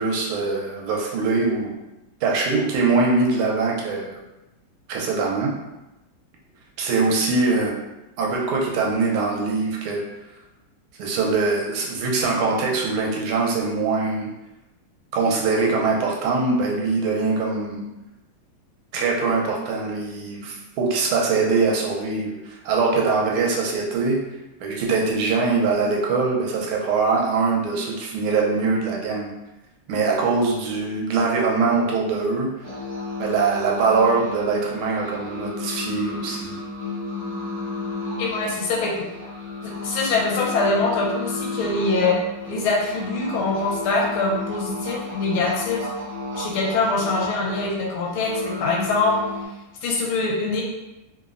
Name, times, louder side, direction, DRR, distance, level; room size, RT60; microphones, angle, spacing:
voice 1, 0.0-1.7 2.2-4.2 4.9-5.5 6.8-7.7 8.2-10.0 11.0-14.3 15.1-17.9 18.9-24.2 24.6-29.3 29.9-32.5 33.2-36.6, right 4 dB, 85° right, -1 dB, 1.5 m, -22 dB
sound 1, 32.6-49.5, left 2 dB, 45° right, 0.6 m, -32 dB
voice 2, 38.2-39.0 39.6-42.2 42.5-45.8 46.4-49.1 49.8-50.6, left 3 dB, 80° left, -2 dB, 1.4 m, -23 dB
3.5 x 2.0 x 2.4 m, 0.97 s
omnidirectional pair, 2.4 m